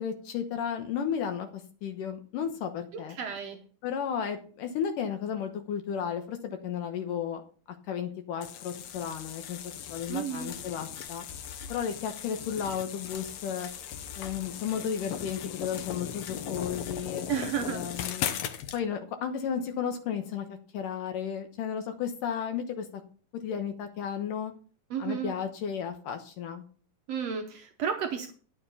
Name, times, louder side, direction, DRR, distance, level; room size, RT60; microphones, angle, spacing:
voice 1, 0.0-1.5 1.8-3.2 3.8-7.4 7.9-11.2 11.7-13.7 14.2-17.3 17.7-18.4 18.7-22.9 23.4-24.5 25.0-26.6, left 8 dB, 70° left, 6 dB, 2.5 m, -33 dB
voice 2, 2.9-3.6 10.1-10.5 17.3-17.9 24.9-25.3 27.1-28.3, right 8 dB, 75° right, 5 dB, 1.5 m, -32 dB
sound 1, 8.4-18.8, left 9 dB, 90° left, 1.4 m, -38 dB
11.5 x 6.9 x 5.5 m, 0.40 s
omnidirectional pair, 4.2 m